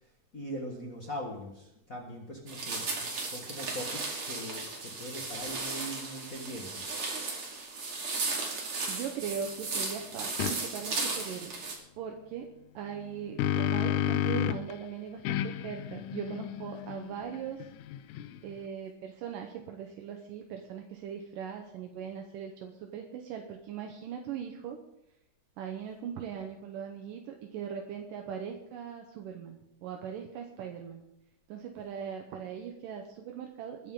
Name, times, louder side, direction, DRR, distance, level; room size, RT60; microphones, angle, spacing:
voice 1, 0.3-2.8 3.2-7.0, equal, 40° left, 0 dB, 1.2 m, -41 dB
sound 1, 2.5-11.7, right 3 dB, 40° right, 3.0 m, -35 dB
voice 2, 8.9-11.6 12.0-17.7 18.4-24.8 25.6-31.0 31.5-33.9, right 8 dB, 75° right, 3 dB, 2.6 m, -40 dB
sound 2, 10.4-10.6 13.0-14.7 15.3-18.6, left 12 dB, 80° left, 1.8 m, -32 dB
21.0 x 10.0 x 3.8 m, 0.85 s
omnidirectional pair, 3.9 m